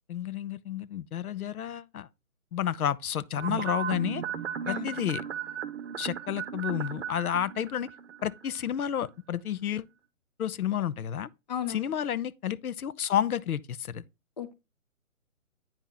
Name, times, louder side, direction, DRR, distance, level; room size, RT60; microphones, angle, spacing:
voice 1, 0.1-2.1 2.5-4.2 4.7-5.2 6.0-7.9 8.2-9.9 10.4-11.3 11.7-14.0, left 10 dB, 85° left, 0.6 m, -31 dB
sound 1, 3.4-8.7 9.0-9.1, right 8 dB, 55° right, 0.7 m, -36 dB
voice 2, 4.7-4.9 11.5-11.8 14.4-14.6, left 10 dB, 30° left, 0.5 m, -34 dB
8.8 x 4.3 x 3.8 m
hypercardioid pair, 150°, 42 cm